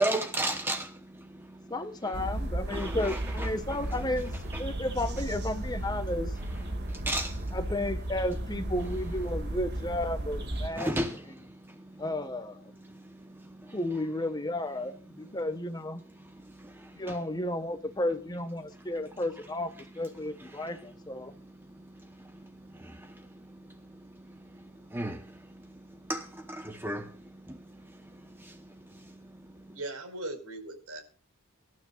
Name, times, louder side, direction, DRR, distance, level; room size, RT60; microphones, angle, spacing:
voice 1, 0.0-1.7 2.7-3.5 4.5-4.8 6.6-7.6 9.5-9.6 10.7-12.0 12.9-13.8 16.2-17.2 20.4-20.8 21.2-29.3 29.6-29.8, right 1 dB, 10° right, 0.9 m, -37 dB
voice 2, 1.7-4.3 4.6-6.3 7.5-10.9 12.0-12.7 13.7-16.0 16.9-21.3, left 1 dB, 20° left, 1.3 m, -33 dB
sound 1, 2.1-10.7, right 1 dB, 50° right, 2.2 m, -34 dB
voice 3, 29.7-31.0, right 2 dB, 80° right, 4.9 m, -38 dB
24.0 x 12.0 x 2.4 m
head